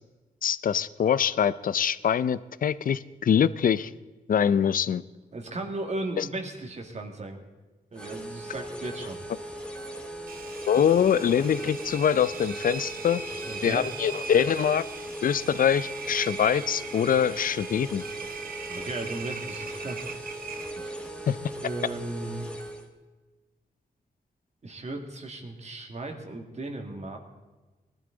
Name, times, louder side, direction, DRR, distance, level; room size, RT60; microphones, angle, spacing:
voice 1, 0.4-3.9 4.3-5.0 6.2-6.3 10.7-13.2 13.6-14.8 15.2-18.0 21.3-21.4, left 8 dB, 65° left, 17 dB, 0.5 m, -24 dB
voice 2, 5.3-7.4 7.9-9.2 13.5-13.9 18.7-20.1 20.7-21.1 21.6-22.5 24.6-27.2, right 2 dB, 45° right, 3 dB, 2.1 m, -36 dB
sound 1, 7.9-22.9, right 1 dB, 5° left, 2.0 m, -39 dB
Engine, 10.3-21.1, right 5 dB, 70° right, 1.0 m, -40 dB
19.0 x 12.5 x 3.9 m, 1.2 s
cardioid pair, 90°, 16 cm